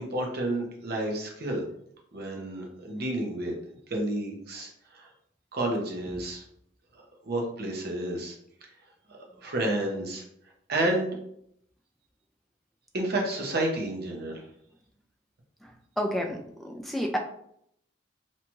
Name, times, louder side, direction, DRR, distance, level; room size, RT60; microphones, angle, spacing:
voice 1, 0.0-1.6 2.1-3.5 3.9-5.1 5.5-6.4 6.9-8.3 9.4-10.2 10.7-11.2 12.9-14.4, right 1 dB, 55° right, 1 dB, 0.7 m, -30 dB
voice 2, 16.0-17.2, equal, ahead, 2 dB, 0.3 m, -30 dB
2.7 x 2.3 x 3.0 m, 0.71 s
head